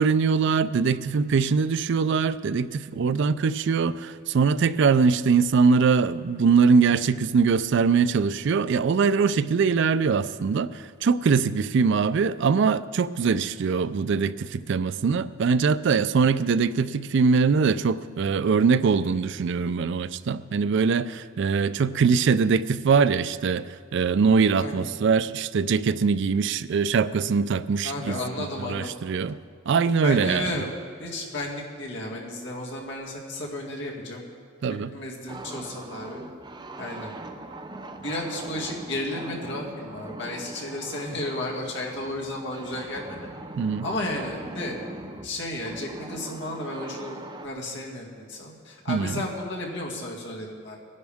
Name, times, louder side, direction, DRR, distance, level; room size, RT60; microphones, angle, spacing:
voice 1, 0.0-23.7 23.9-29.4 29.7-30.6 34.6-34.9 43.6-43.9 48.9-49.2, right 5 dB, 65° right, 15 dB, 0.4 m, -22 dB
voice 2, 27.8-28.9 30.0-30.7 31.0-34.2 34.7-36.2 36.8-37.1 38.0-43.2 43.8-44.8 45.2-50.8, left 1 dB, 65° left, -2 dB, 2.2 m, -33 dB
sound 1, 35.3-47.5, right 2 dB, 20° right, 0.6 m, -41 dB
19.5 x 11.0 x 3.5 m, 2.3 s
head